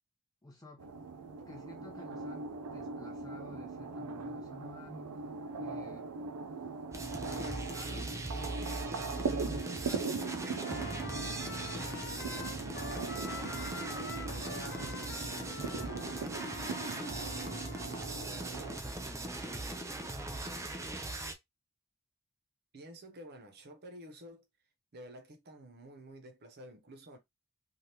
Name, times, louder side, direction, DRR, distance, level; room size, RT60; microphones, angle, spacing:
voice 1, 0.4-0.9 1.5-5.1 5.5-6.1 7.3-8.6 8.9-12.7 13.4-13.9 14.2-16.2 16.6-18.1 18.7-20.6, left 1 dB, 15° left, 0.8 m, -52 dB
sound 1, 0.8-18.8, right 4 dB, 85° right, 0.5 m, -40 dB
sound 2, 6.9-21.3, right 2 dB, 15° right, 0.5 m, -40 dB
Trumpet, 10.6-18.2, left 5 dB, 50° left, 0.5 m, -46 dB
voice 2, 22.7-24.4 24.9-27.2, equal, 45° right, 0.8 m, -50 dB
3.3 x 2.4 x 2.8 m
head